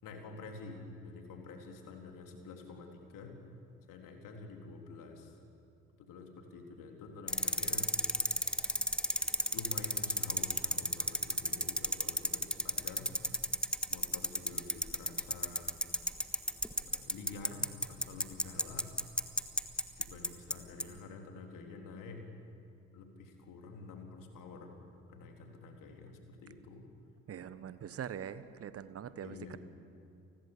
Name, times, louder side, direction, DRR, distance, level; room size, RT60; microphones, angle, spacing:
voice 1, 0.0-3.4 3.9-5.4 6.0-8.0 9.5-13.1 13.9-15.8 16.8-18.9 20.0-22.3 22.9-24.7 25.1-26.9 29.2-29.6, left 3 dB, 55° left, 3 dB, 3.7 m, -48 dB
sound 1, 7.3-20.5 20.8-20.9, left 1 dB, 5° left, 1.5 m, -31 dB
voice 2, 27.3-29.6, right 8 dB, 35° right, 14 dB, 1.2 m, -43 dB
29.5 x 20.5 x 7.3 m, 2.5 s
figure-of-eight pair, 50°, 39 cm